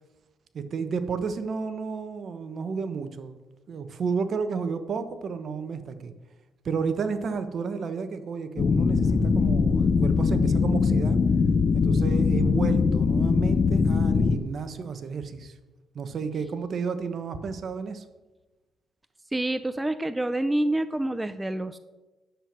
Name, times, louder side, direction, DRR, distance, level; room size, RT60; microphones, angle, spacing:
voice 1, 0.5-3.4 3.7-6.1 6.6-11.2 11.7-15.6 15.9-18.0, right 5 dB, 55° right, 10 dB, 1.1 m, -32 dB
sound 1, 8.6-14.4, left 5 dB, 40° left, 0.7 m, -22 dB
voice 2, 19.3-21.8, right 1 dB, 10° right, 12 dB, 0.5 m, -27 dB
10.0 x 7.8 x 6.1 m, 1.1 s
cardioid pair, 90°, 0 cm